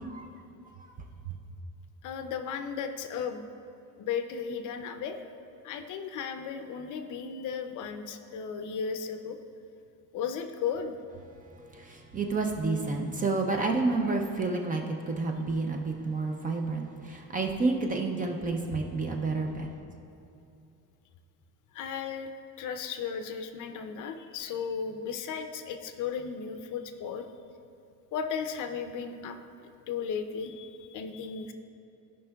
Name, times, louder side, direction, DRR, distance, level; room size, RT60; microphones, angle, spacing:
voice 1, 2.0-3.5 4.0-5.2 5.6-9.4 10.1-11.0 21.7-22.3 22.6-27.3 28.1-29.4 29.9-31.5, left 6 dB, 55° left, 7 dB, 0.5 m, -35 dB
voice 2, 11.7-19.7, right 3 dB, 25° right, 2 dB, 0.4 m, -30 dB
15.0 x 5.3 x 2.3 m, 2.7 s
cardioid pair, 170°, 36 cm